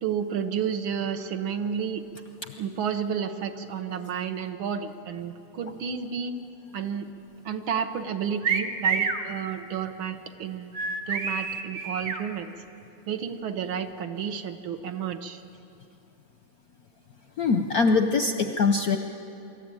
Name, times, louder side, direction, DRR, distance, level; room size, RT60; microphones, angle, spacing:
voice 1, 0.0-2.0 2.6-6.3 6.7-7.1 7.5-12.5 13.1-15.4, right 7 dB, 70° right, 8 dB, 1.7 m, -31 dB
sound 1, 8.4-9.2 10.7-12.2, right 5 dB, 45° right, 1.3 m, -27 dB
voice 2, 17.4-19.0, left 4 dB, 65° left, 7 dB, 0.9 m, -22 dB
24.5 x 14.0 x 9.0 m, 2.8 s
omnidirectional pair, 2.4 m